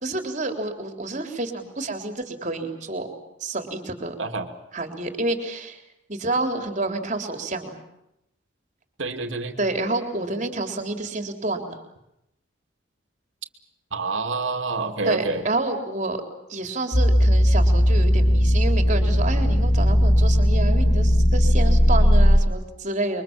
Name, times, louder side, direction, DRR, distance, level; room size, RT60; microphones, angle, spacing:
voice 1, 0.0-3.1 3.4-4.1 4.7-5.8 6.1-7.8 9.6-11.7 15.0-16.2 16.5-23.2, right 2 dB, 40° right, 5 dB, 3.7 m, -28 dB
voice 2, 9.0-9.6 13.9-15.4, right 3 dB, 75° right, 5 dB, 2.6 m, -27 dB
sound 1, 16.9-22.4, equal, 65° left, 2.2 m, -17 dB
27.5 x 23.5 x 7.5 m, 0.84 s
head